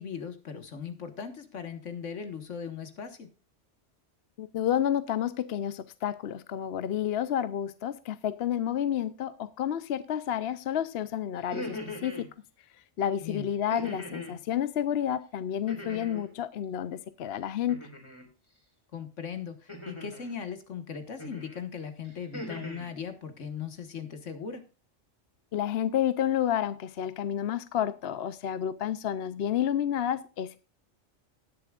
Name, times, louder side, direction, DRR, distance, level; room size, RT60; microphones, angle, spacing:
voice 1, 0.0-3.3 13.2-13.5 18.9-24.6, left 7 dB, 80° left, 1.8 m, -38 dB
voice 2, 4.4-12.3 13.0-17.8 25.5-30.6, left 10 dB, 60° left, 0.8 m, -30 dB
sound 1, 11.4-12.3 13.7-14.4 15.7-16.3 17.7-18.3 19.7-20.3 21.2-21.6 22.0-22.9, left 1 dB, 25° left, 3.3 m, -40 dB
19.0 x 7.1 x 2.4 m
omnidirectional pair, 1.2 m